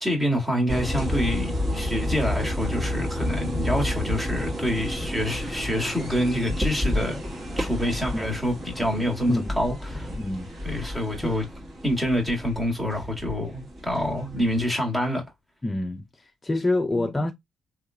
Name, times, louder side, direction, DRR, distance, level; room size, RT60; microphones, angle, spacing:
voice 1, 0.0-7.2 7.6-10.1 10.6-11.4 11.8-15.2 17.0-17.1, equal, 10° right, 1.8 m, -27 dB
sound 1, 0.7-14.7, left 1 dB, 35° right, 2.0 m, -31 dB
voice 2, 8.9-9.5 10.1-10.8 11.2-11.4 14.4-14.5 15.6-17.3, left 2 dB, 20° left, 0.5 m, -28 dB
3.5 x 3.1 x 2.2 m
cardioid pair, 90°, 0 cm